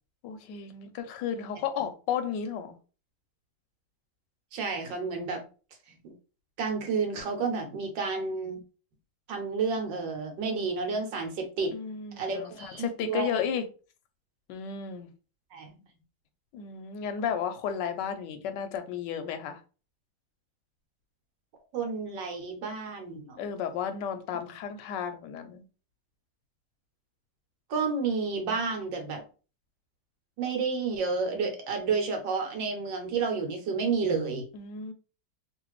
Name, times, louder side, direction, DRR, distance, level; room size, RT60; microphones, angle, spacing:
voice 1, 0.2-2.8 11.7-13.6 14.5-15.1 16.5-19.6 23.4-25.6 34.5-34.9, left 7 dB, 75° left, 1.1 m, -33 dB
voice 2, 4.5-5.4 6.6-8.6 9.3-11.7 12.2-13.3 15.5-15.7 21.7-23.4 27.7-29.2 30.4-34.5, right 4 dB, 70° right, 1.5 m, -30 dB
3.2 x 2.5 x 3.1 m
omnidirectional pair, 2.1 m